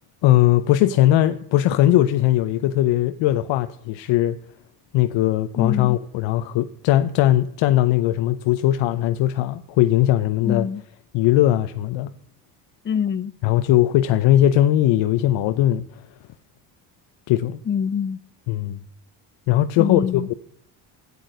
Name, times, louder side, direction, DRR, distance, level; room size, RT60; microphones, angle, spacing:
voice 1, 0.2-4.4 4.9-10.7 11.1-12.1 13.4-15.8 17.3-17.6 18.5-18.8 19.5-20.3, left 13 dB, 75° left, 0.7 m, -19 dB
voice 2, 5.6-6.0 10.4-10.8 12.8-13.3 17.7-18.2 19.8-20.3, left 7 dB, 25° left, 0.5 m, -24 dB
10.5 x 8.5 x 9.1 m
supercardioid pair, 80°, 45 cm